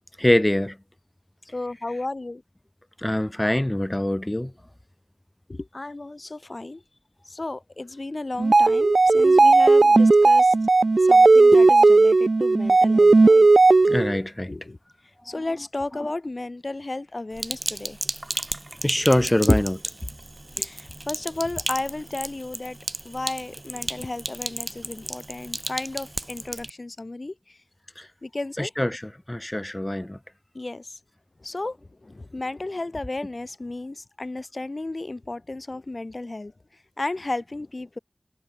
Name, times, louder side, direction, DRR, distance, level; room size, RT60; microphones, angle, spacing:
voice 1, 0.2-0.8 3.0-4.5 13.9-14.5 18.8-19.8 20.6-20.7 28.6-29.0 29.3-30.2, left 1 dB, 20° left, 0.7 m, -23 dB
voice 2, 1.5-2.4 5.5-6.8 7.2-10.5 11.0-13.5 14.5-14.8 15.2-18.0 20.6-22.8 23.1-27.6 28.2-28.7 30.5-31.0 31.4-36.5 37.0-38.0, left 2 dB, 55° left, 1.8 m, -33 dB
sound 1, 8.4-14.2, right 3 dB, 80° right, 0.9 m, -15 dB
Sink (filling or washing), 17.4-26.7, right 1 dB, 35° right, 6.9 m, -34 dB
wide cardioid pair, 60°, 0 cm